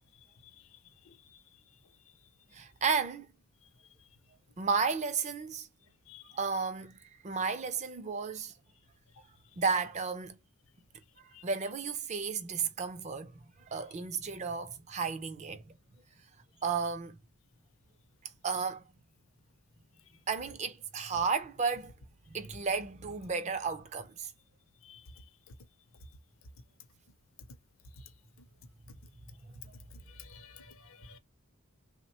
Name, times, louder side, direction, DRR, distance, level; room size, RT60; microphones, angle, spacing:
voice 1, 1.0-1.4 6.1-6.4 11.3-11.4 24.8-25.2 28.0-28.1 30.1-31.2, left 6 dB, 60° left, 0.5 m, -53 dB
voice 2, 2.5-3.3 4.6-5.7 6.3-8.5 9.6-10.4 11.2-15.8 16.6-17.2 18.4-18.9 20.3-21.9 22.3-24.3 29.6-29.7, right 5 dB, 30° right, 0.4 m, -33 dB
3.3 x 2.1 x 2.8 m
head